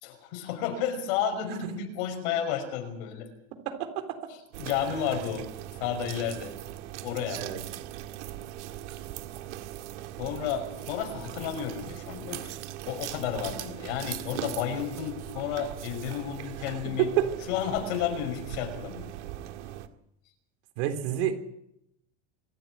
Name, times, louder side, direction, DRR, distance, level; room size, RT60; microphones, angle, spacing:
voice 1, 0.0-3.3 4.3-5.5 5.8-6.5 7.0-7.4 10.2-12.4 12.9-17.1 17.5-19.1, left 8 dB, 60° left, 5 dB, 5.5 m, -32 dB
voice 2, 3.7-4.2 7.4-7.6 17.0-17.3 20.8-21.3, right 11 dB, 65° right, 7 dB, 3.7 m, -27 dB
sound 1, 4.5-19.9, right 13 dB, 80° right, 1.9 m, -40 dB
26.0 x 13.0 x 9.7 m, 0.80 s
cardioid pair, 170°, 34 cm